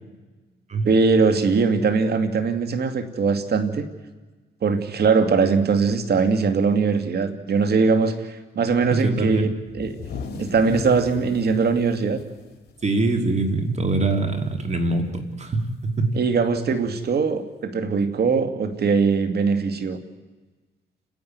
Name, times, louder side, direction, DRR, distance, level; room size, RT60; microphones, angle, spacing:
voice 1, 0.8-3.9 4.6-10.0 10.4-12.2 16.2-20.0, right 5 dB, 55° right, 8 dB, 2.3 m, -21 dB
voice 2, 8.9-9.5 12.8-16.2, right 2 dB, 35° right, 5 dB, 3.3 m, -23 dB
sound 1, 9.7-13.4 13.7-13.9 14.2-14.7 15.8-15.9 17.0-17.1, left 5 dB, 55° left, 3.2 m, -37 dB
29.5 x 11.0 x 9.6 m, 1.3 s
cardioid pair, 90°, 20 cm